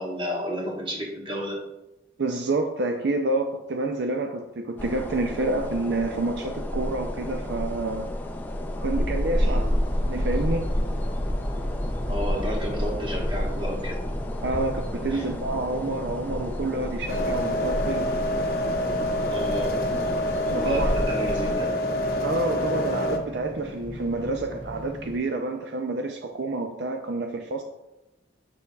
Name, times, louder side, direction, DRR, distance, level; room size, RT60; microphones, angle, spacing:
voice 1, 0.0-1.6 9.4-9.7 12.0-14.0 15.1-15.3 19.3-19.8 20.5-21.8, equal, 30° right, -1 dB, 1.3 m, -31 dB
voice 2, 2.2-8.1 8.8-9.7 10.1-10.7 14.4-18.2 20.5-20.9 22.2-27.6, right 2 dB, 65° right, 5 dB, 0.5 m, -28 dB
sound 1, 4.8-21.6, left 1 dB, 10° left, 0.4 m, -30 dB
sound 2, 9.5-25.2, equal, 25° left, 1.5 m, -40 dB
sound 3, 17.1-23.2, left 1 dB, 55° left, 0.8 m, -27 dB
6.9 x 6.7 x 2.3 m, 0.96 s
head